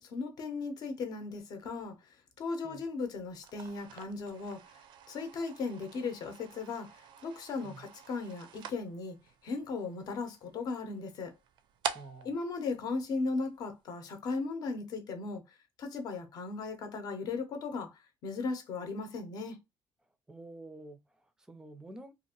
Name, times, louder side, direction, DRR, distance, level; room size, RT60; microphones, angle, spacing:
voice 1, 0.0-4.8 5.1-9.2 9.4-11.3 12.2-15.4 15.8-19.6, left 4 dB, 50° left, 0.8 m, -37 dB
sound 1, 3.3-13.7, right 8 dB, 65° right, 0.4 m, -46 dB
voice 2, 11.9-12.3 20.0-22.1, right 2 dB, 10° right, 0.4 m, -49 dB
2.8 x 2.5 x 2.8 m
cardioid pair, 175°, 8 cm